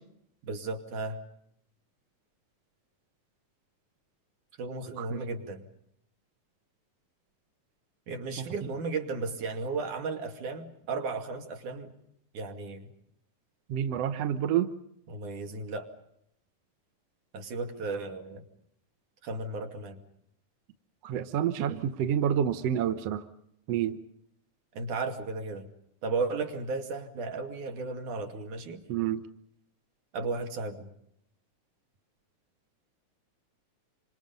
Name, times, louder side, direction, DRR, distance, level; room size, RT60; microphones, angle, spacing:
voice 1, 0.4-1.2 4.6-5.6 8.1-11.9 12.3-12.9 15.1-15.9 17.3-18.4 19.2-20.0 24.7-25.7 26.0-28.8 30.1-30.9, right 3 dB, 80° right, 5 dB, 4.1 m, -34 dB
voice 2, 13.7-14.7 21.0-23.2 23.7-24.0 28.9-29.2, right 9 dB, 65° right, 10 dB, 2.0 m, -28 dB
28.0 x 26.0 x 5.4 m, 0.73 s
omnidirectional pair, 3.5 m